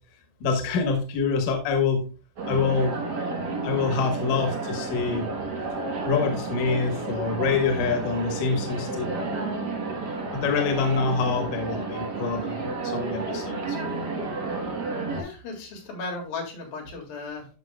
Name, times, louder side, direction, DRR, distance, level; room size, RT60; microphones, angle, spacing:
voice 1, 0.4-2.0 2.5-2.9 3.6-5.3 6.0-9.1 10.3-13.8, left 4 dB, 70° left, 4 dB, 2.7 m, -25 dB
sound 1, 2.4-15.2, right 3 dB, 90° right, 0.9 m, -31 dB
voice 2, 15.2-17.5, left 3 dB, 90° left, 0 dB, 3.8 m, -35 dB
12.5 x 5.4 x 2.3 m, 0.34 s
omnidirectional pair, 4.0 m